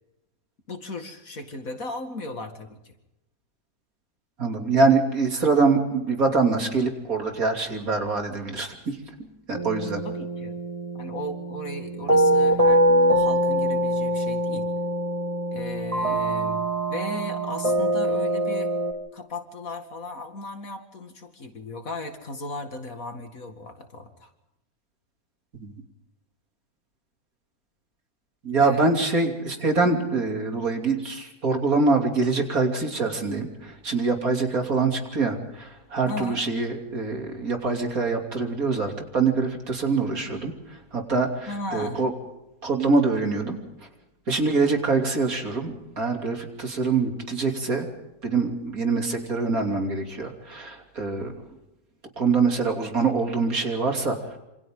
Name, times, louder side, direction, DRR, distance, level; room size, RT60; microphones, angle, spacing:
voice 1, 0.7-2.9 10.0-10.6 10.9-12.9 13.1-14.7 15.5-18.7 19.1-24.3 28.6-28.9 36.1-36.4 41.5-42.0, left 2 dB, 50° left, 6 dB, 2.4 m, -36 dB
voice 2, 4.4-10.0 28.4-42.1 42.6-43.6 44.3-47.9 48.2-51.3 52.2-54.4, right 4 dB, 55° right, 3 dB, 3.5 m, -24 dB
sound 1, 9.5-18.9, right 1 dB, 20° right, 2.1 m, -24 dB
27.5 x 26.5 x 3.8 m, 0.94 s
omnidirectional pair, 1.8 m